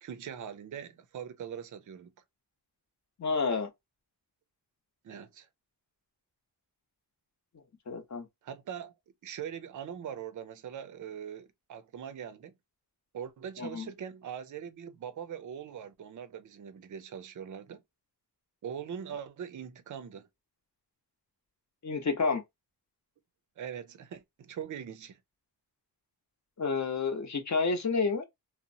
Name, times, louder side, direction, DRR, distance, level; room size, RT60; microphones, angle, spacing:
voice 1, 0.0-2.1 5.0-5.5 8.4-8.9 9.2-12.5 13.1-17.8 18.6-20.3 23.6-25.2, right 8 dB, 50° right, 0.5 m, -42 dB
voice 2, 3.2-3.7 7.9-8.3 13.6-13.9 21.8-22.4 26.6-28.2, left 4 dB, 40° left, 0.7 m, -29 dB
2.8 x 2.0 x 2.6 m
wide cardioid pair, 110°, 42 cm